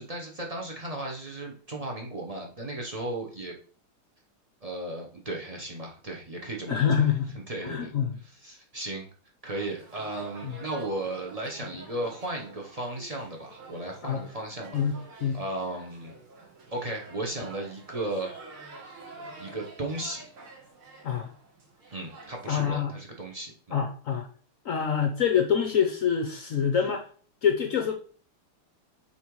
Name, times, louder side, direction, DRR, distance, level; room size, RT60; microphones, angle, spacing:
voice 1, 0.0-3.6 4.6-7.1 7.5-7.9 8.2-9.1 9.4-14.8 15.3-16.2 16.7-18.3 19.4-20.2 21.9-23.8, right 2 dB, 50° right, 0 dB, 0.4 m, -35 dB
voice 2, 6.7-7.3 7.6-8.1 14.0-14.2 14.7-15.4 21.0-21.3 22.5-22.9 23.7-24.3 24.6-27.0 27.4-27.9, left 7 dB, 70° left, 4 dB, 0.7 m, -26 dB
sound 1, 9.4-22.7, right 3 dB, 80° right, 2.8 m, -48 dB
5.6 x 4.3 x 4.6 m, 0.43 s
omnidirectional pair, 2.3 m